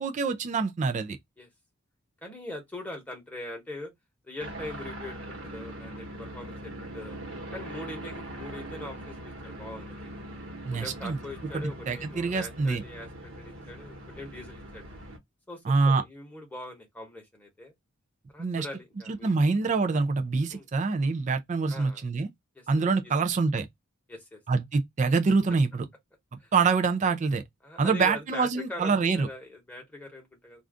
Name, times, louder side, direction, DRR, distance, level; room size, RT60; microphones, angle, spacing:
voice 1, 0.0-1.2 10.6-11.2 11.5-12.8 15.7-16.0 18.4-18.7 19.1-22.3 22.7-23.7 24.5-25.9 26.5-27.4 27.8-29.3, right 4 dB, 35° right, 0.3 m, -25 dB
voice 2, 2.2-3.9 4.2-7.2 7.5-10.1 10.7-14.8 15.5-17.7 18.3-19.3 20.5-20.7 21.7-22.0 22.5-22.7 23.0-23.1 24.1-24.4 26.4-26.5 27.6-30.6, left 1 dB, 5° left, 1.0 m, -42 dB
sound 1, 4.4-15.2, right 1 dB, 60° right, 1.1 m, -41 dB
2.5 x 2.2 x 3.5 m
head